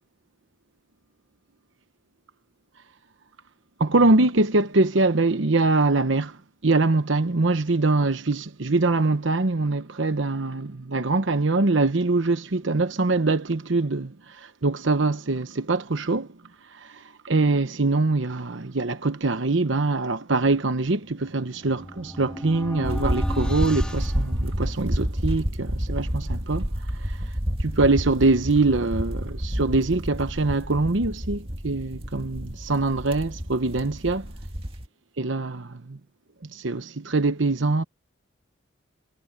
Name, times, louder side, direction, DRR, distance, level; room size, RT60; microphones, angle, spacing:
voice 1, 3.8-6.4 6.6-14.1 14.6-16.3 16.8-16.9 17.2-26.7 27.6-34.3 35.2-36.0 36.5-37.8, right 3 dB, 75° right, 1.0 m, -23 dB
sound 1, 21.1-25.1, equal, 5° left, 3.5 m, -35 dB
sound 2, 22.8-34.9, equal, 30° right, 2.1 m, -29 dB
head